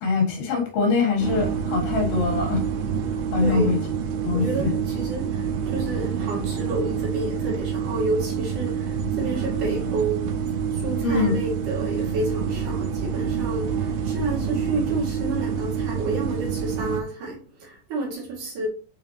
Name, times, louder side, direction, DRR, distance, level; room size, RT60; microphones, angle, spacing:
voice 1, 0.0-2.6 3.3-3.8 4.3-4.7 11.0-11.4, left 4 dB, 75° left, 3.5 m, -23 dB
sound 1, 1.2-17.0, right 7 dB, 85° right, 2.9 m, -27 dB
voice 2, 3.4-3.8 4.3-18.7, right 2 dB, 55° right, 3.2 m, -30 dB
6.7 x 5.5 x 2.8 m
omnidirectional pair, 4.5 m